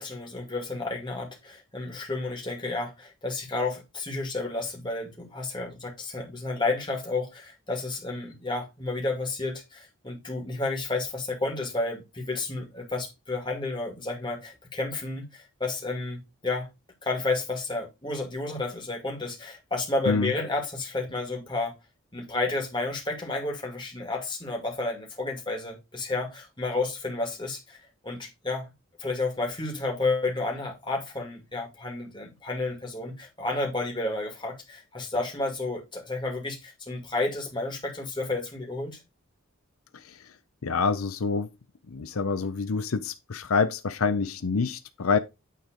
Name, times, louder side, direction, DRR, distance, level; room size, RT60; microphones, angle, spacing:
voice 1, 0.0-16.7 17.0-21.7 22.1-27.8 28.0-28.7 29.0-39.0, left 2 dB, 20° left, 2.2 m, -31 dB
voice 2, 40.6-41.5 41.9-45.2, left 4 dB, 85° left, 0.6 m, -26 dB
9.1 x 3.8 x 5.1 m
head